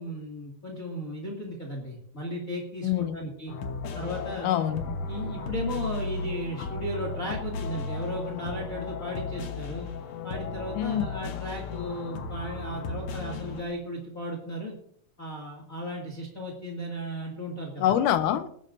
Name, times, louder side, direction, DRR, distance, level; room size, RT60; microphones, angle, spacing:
voice 1, 0.0-3.5 3.9-4.5 5.1-9.9 10.2-14.8 15.2-17.9, equal, 25° left, 2.2 m, -35 dB
voice 2, 2.8-3.2 4.4-5.0 10.8-11.1 17.8-18.5, left 10 dB, 80° left, 2.1 m, -25 dB
sound 1, 3.5-13.6, left 3 dB, 60° left, 2.0 m, -35 dB
20.5 x 11.5 x 2.6 m
omnidirectional pair, 4.0 m